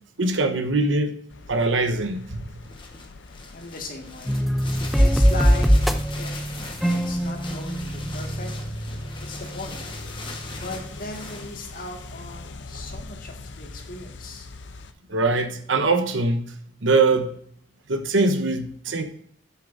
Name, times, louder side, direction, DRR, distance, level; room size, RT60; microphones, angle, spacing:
voice 1, 0.2-1.2 1.5-2.6 15.1-16.5 16.8-17.3 17.9-19.0, right 3 dB, 90° right, 8 dB, 1.0 m, -22 dB
sound 1, 1.3-14.9, left 3 dB, 70° left, 0.6 m, -42 dB
sound 2, 2.6-11.5, left 3 dB, 25° left, 1.2 m, -41 dB
voice 2, 3.5-4.4 5.0-8.5 9.2-9.8 10.5-14.5, left 2 dB, 50° left, 2 dB, 1.9 m, -38 dB
sound 3, 4.3-11.0, equal, ahead, 0.5 m, -23 dB
9.7 x 8.3 x 2.6 m, 0.67 s
head